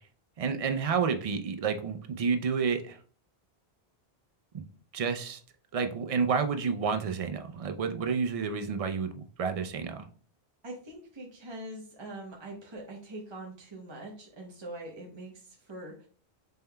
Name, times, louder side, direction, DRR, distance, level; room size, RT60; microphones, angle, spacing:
voice 1, 0.4-3.0 4.5-4.6 4.9-5.4 5.7-10.0, right 5 dB, 50° right, 8 dB, 0.4 m, -30 dB
voice 2, 10.6-16.1, right 1 dB, 30° right, -2 dB, 0.8 m, -43 dB
5.4 x 3.3 x 2.2 m, 0.41 s
omnidirectional pair, 1.1 m